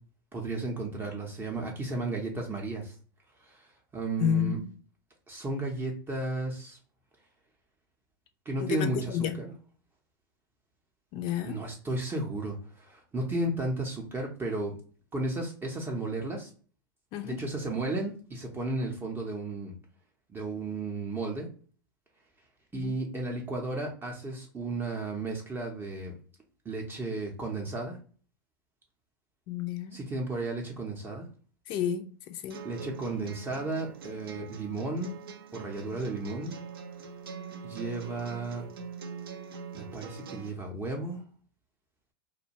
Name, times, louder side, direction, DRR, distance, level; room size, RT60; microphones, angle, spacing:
voice 1, 0.3-2.9 3.4-4.6 5.3-6.8 8.5-9.5 11.4-14.7 15.1-16.5 17.2-19.7 20.3-21.5 22.7-26.1 26.7-28.0 29.9-31.3 32.6-35.1 35.5-36.5 37.6-38.6 39.7-41.2, right 2 dB, 15° right, 0.5 m, -34 dB
voice 2, 4.2-4.6 8.6-9.4 11.1-11.6 17.1-17.4 22.7-22.9 29.5-30.0 31.7-32.6, left 9 dB, 45° left, 0.4 m, -31 dB
sound 1, 32.5-40.5, right 6 dB, 85° right, 0.5 m, -43 dB
2.4 x 2.2 x 2.8 m
hypercardioid pair, 105°, 12 cm